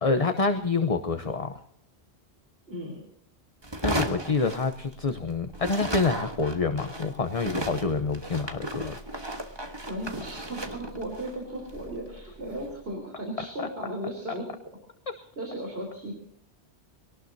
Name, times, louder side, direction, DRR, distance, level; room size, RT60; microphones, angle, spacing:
voice 1, 0.0-1.6 3.8-9.0 13.6-13.7, left 4 dB, 35° left, 7 dB, 0.9 m, -27 dB
voice 2, 2.7-3.0 9.9-14.5 15.1-16.1, right 1 dB, 65° right, 0 dB, 4.0 m, -36 dB
sound 1, 3.6-5.2 5.5-12.7, right 1 dB, 25° right, 1.5 m, -35 dB
22.5 x 18.5 x 2.8 m, 0.69 s
omnidirectional pair, 1.1 m